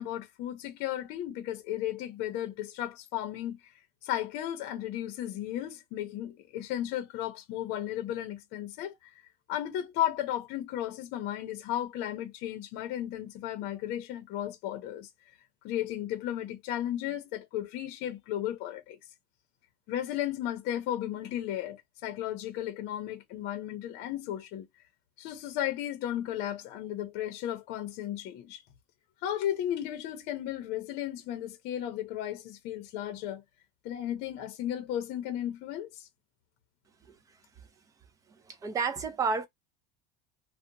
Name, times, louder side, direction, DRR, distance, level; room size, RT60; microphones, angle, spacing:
voice 1, 0.0-3.6 4.0-9.0 9.5-15.1 15.6-19.0 19.9-24.7 25.2-28.6 29.2-33.4 33.8-36.1, left 12 dB, 50° left, 0.7 m, -34 dB
voice 2, 38.5-39.5, right 5 dB, 15° right, 0.4 m, -30 dB
2.8 x 2.1 x 2.5 m
cardioid pair, 170°, 21 cm